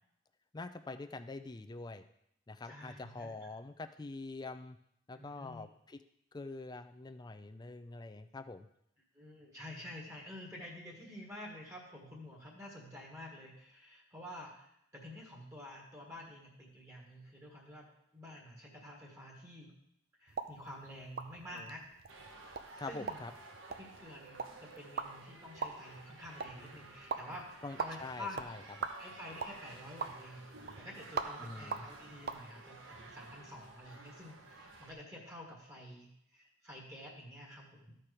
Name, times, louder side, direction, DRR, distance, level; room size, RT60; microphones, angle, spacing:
voice 1, 0.5-2.1 2.5-4.8 5.1-6.0 6.3-8.7 21.5-21.7 22.8-23.3 27.6-28.9 31.4-31.9, left 3 dB, 20° left, 9 dB, 0.4 m, -45 dB
voice 2, 2.6-3.4 5.1-5.7 9.1-17.9 18.1-19.7 20.2-21.8 22.9-23.2 23.7-27.5 27.8-28.5 29.0-30.5 30.8-38.0, left 1 dB, 15° right, -2 dB, 1.6 m, -49 dB
sound 1, 20.3-32.4, right 5 dB, 50° right, 0.6 m, -44 dB
sound 2, 22.1-34.9, right 3 dB, 70° right, 1.1 m, -53 dB
13.5 x 4.5 x 4.9 m, 0.75 s
head